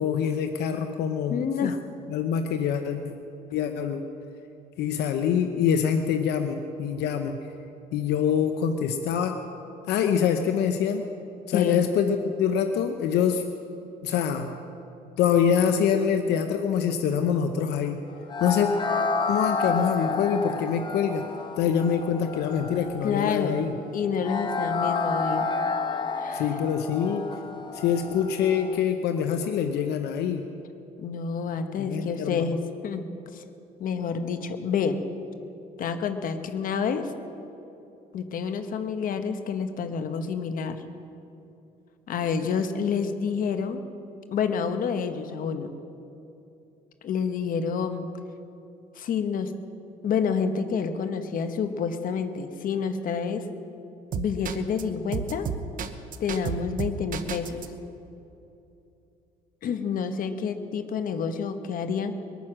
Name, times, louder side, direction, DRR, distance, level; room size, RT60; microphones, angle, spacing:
voice 1, 0.0-1.7 2.1-3.1 3.5-4.0 4.8-7.4 7.9-9.4 9.9-11.1 11.5-13.4 14.0-14.5 15.2-18.0 18.4-18.7 19.3-21.3 21.6-23.7 26.3-27.3 27.7-30.5 31.8-32.5, left 7 dB, 80° left, 7 dB, 0.9 m, -25 dB
voice 2, 1.3-1.8 11.5-11.8 23.0-23.6 23.9-25.5 26.2-26.4 31.0-32.6 32.8-33.0 33.3-33.4 33.8-35.0 35.8-37.1 38.1-40.8 42.1-43.8 44.3-45.7 47.0-48.1 48.9-49.5 50.0-53.5 54.1-55.5 56.2-57.7 59.6-62.2, left 6 dB, 55° left, 8 dB, 1.2 m, -28 dB
sound 1, 18.3-28.8, left 4 dB, 25° left, 1.2 m, -30 dB
sound 2, 54.1-54.8 55.1-57.7, right 8 dB, 55° right, 1.0 m, -31 dB
22.0 x 9.4 x 6.2 m, 2.8 s
cardioid pair, 110°, 17 cm